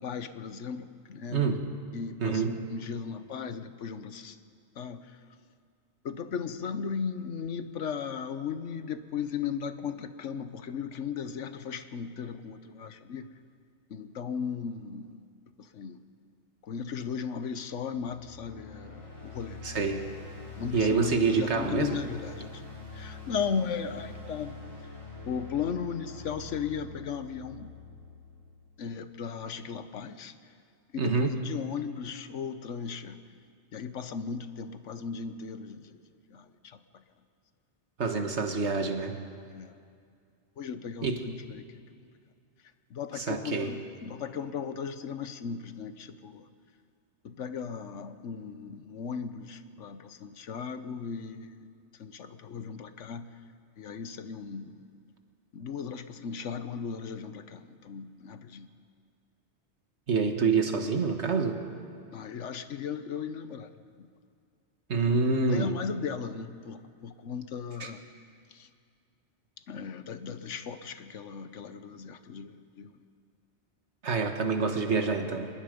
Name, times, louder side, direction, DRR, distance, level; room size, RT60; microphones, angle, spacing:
voice 1, 0.0-1.4 1.9-4.3 4.8-5.0 6.0-13.2 13.9-15.1 15.7-16.0 16.7-19.6 20.5-22.6 22.9-24.5 25.3-27.7 28.8-30.3 30.9-33.2 33.7-35.8 36.3-36.4 39.5-39.7 40.6-41.6 42.9-46.4 47.2-51.5 52.0-53.3 53.8-54.7 55.5-58.7 62.1-63.7 65.0-65.1 65.5-68.0 69.7-72.9, left 6 dB, 90° left, 11 dB, 1.3 m, -36 dB
voice 2, 1.3-1.7 2.2-2.6 19.6-20.1 20.7-22.0 31.0-31.5 38.0-39.1 41.0-41.3 43.1-43.7 60.1-61.6 64.9-65.7 67.8-67.9 74.0-75.5, right 4 dB, 70° right, 5 dB, 1.8 m, -27 dB
sound 1, 17.9-29.0, left 3 dB, 30° left, 7.0 m, -45 dB
26.0 x 20.0 x 5.2 m, 2.3 s
omnidirectional pair, 1.2 m